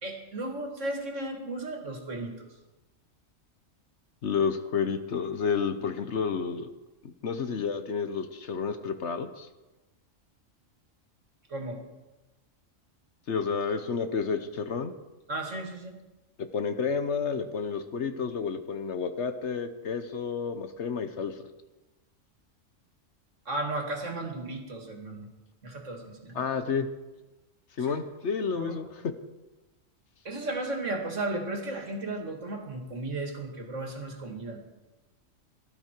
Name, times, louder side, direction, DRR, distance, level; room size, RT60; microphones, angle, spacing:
voice 1, 0.0-2.5 11.5-11.8 15.3-16.0 23.5-25.3 25.6-26.4 27.9-28.0 28.5-28.8 30.2-34.6, right 2 dB, 65° right, 3 dB, 2.5 m, -34 dB
voice 2, 4.2-6.7 7.0-9.5 13.3-14.9 16.5-21.3 26.3-26.9 27.8-28.9, left 6 dB, 60° left, 9 dB, 1.2 m, -30 dB
17.5 x 12.5 x 4.5 m, 1.1 s
omnidirectional pair, 1.4 m